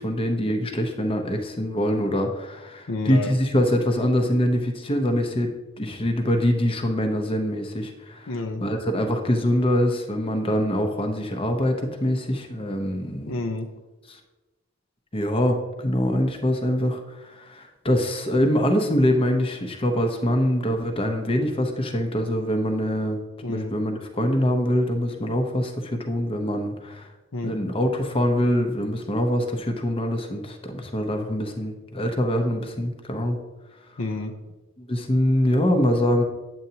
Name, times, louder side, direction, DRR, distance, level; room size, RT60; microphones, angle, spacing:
voice 1, 0.0-8.3 8.6-13.3 14.1-14.2 15.1-23.2 23.5-27.1 27.4-33.4 34.8-36.2, equal, 25° left, 4 dB, 0.8 m, -24 dB
voice 2, 2.9-3.4 8.3-8.6 13.3-13.7 23.4-23.8 27.3-27.7 34.0-34.3, left 2 dB, 70° left, 5 dB, 0.6 m, -29 dB
9.1 x 7.9 x 2.8 m, 1.1 s
head